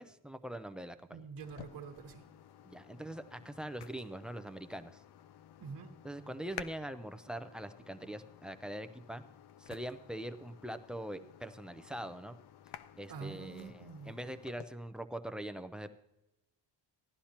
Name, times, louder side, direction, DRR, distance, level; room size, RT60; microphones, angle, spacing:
voice 1, 0.0-1.2 2.6-5.0 6.0-9.2 9.6-12.4 13.0-15.9, right 1 dB, ahead, 8 dB, 0.3 m, -43 dB
voice 2, 1.1-2.2 5.6-5.9 13.1-14.1, right 5 dB, 50° right, 2 dB, 1.2 m, -46 dB
sound 1, 1.4-14.7, left 10 dB, 60° left, 0.6 m, -53 dB
16.0 x 11.5 x 2.9 m, 0.92 s
cardioid pair, 150°, 44 cm